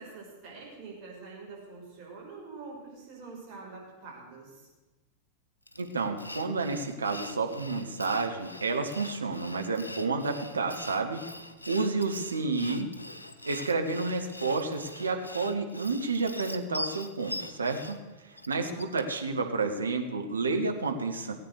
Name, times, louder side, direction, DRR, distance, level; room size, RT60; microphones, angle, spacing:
voice 1, 0.0-4.7 18.6-19.0, right 4 dB, 40° right, -3 dB, 6.0 m, -45 dB
Sawing, 5.7-19.3, left 1 dB, 85° left, 0.8 m, -42 dB
voice 2, 5.8-11.2 11.7-12.9 13.4-18.0 18.5-21.3, right 3 dB, 75° right, 4 dB, 1.5 m, -30 dB
17.5 x 8.6 x 6.6 m, 1.2 s
figure-of-eight pair, 90°, 0 cm